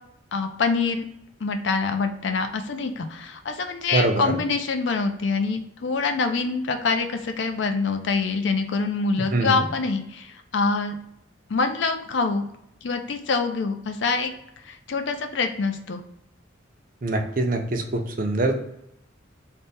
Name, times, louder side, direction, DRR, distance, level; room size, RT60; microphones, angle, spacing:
voice 1, 0.3-1.1 1.4-10.9 11.5-12.4 12.8-14.3 14.7-16.0, left 4 dB, 65° left, 6 dB, 0.5 m, -25 dB
voice 2, 3.9-4.4 9.3-9.7 17.0-18.6, right 2 dB, 45° right, 4 dB, 0.5 m, -24 dB
3.3 x 2.1 x 4.0 m, 0.79 s
head